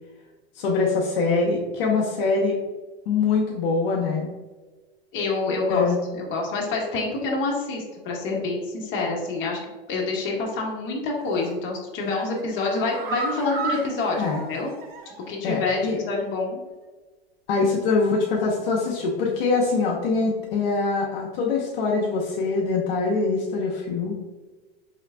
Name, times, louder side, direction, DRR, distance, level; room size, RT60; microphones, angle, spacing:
voice 1, 0.5-2.6 3.1-4.3 5.7-6.0 14.2-14.4 15.4-16.0 17.5-24.2, left 4 dB, 60° left, -3 dB, 0.9 m, -23 dB
voice 2, 5.1-9.6 9.9-14.7 15.3-16.6, left 3 dB, 40° left, -1 dB, 1.1 m, -27 dB
sound 1, 11.2-11.6 12.0-15.4 15.7-15.8 16.2-16.3, right 3 dB, 65° right, 0.8 m, -34 dB
4.8 x 3.3 x 2.2 m, 1.3 s
hypercardioid pair, 115°, 31 cm